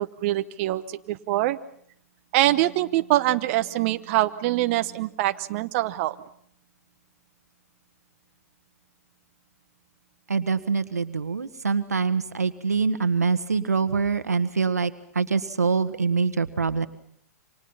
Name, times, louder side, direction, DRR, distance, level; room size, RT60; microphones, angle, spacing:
voice 1, 0.0-1.6 2.3-6.1, right 15 dB, 50° right, 9 dB, 1.1 m, -24 dB
voice 2, 10.3-16.9, right 5 dB, 90° right, 12 dB, 1.6 m, -24 dB
29.0 x 26.0 x 5.7 m, 0.66 s
hypercardioid pair, 115°, 8 cm